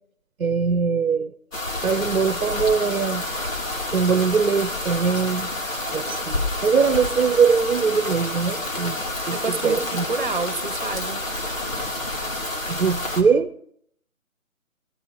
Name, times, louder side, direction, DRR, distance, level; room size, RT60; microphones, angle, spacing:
voice 1, 0.4-1.3 1.8-3.2 3.9-5.5 5.9-9.0 9.3-10.0 12.7-13.5, right 5 dB, 70° right, 14 dB, 0.9 m, -21 dB
sound 1, 1.5-13.2, left 1 dB, 65° left, 3.6 m, -29 dB
voice 2, 9.3-11.2, right 4 dB, 35° right, 11 dB, 1.2 m, -29 dB
21.5 x 16.5 x 3.2 m, 0.65 s
figure-of-eight pair, 160°, 42 cm